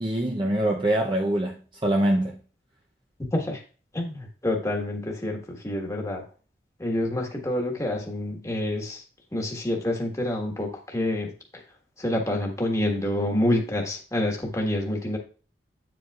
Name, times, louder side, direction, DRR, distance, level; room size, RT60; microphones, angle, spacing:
voice 1, 0.0-2.4, right 1 dB, 25° right, 0.6 m, -24 dB
voice 2, 3.3-3.6 3.9-6.2 6.8-9.0 9.3-11.6 12.0-15.2, left 1 dB, 15° left, 1.4 m, -27 dB
8.9 x 7.7 x 2.4 m
head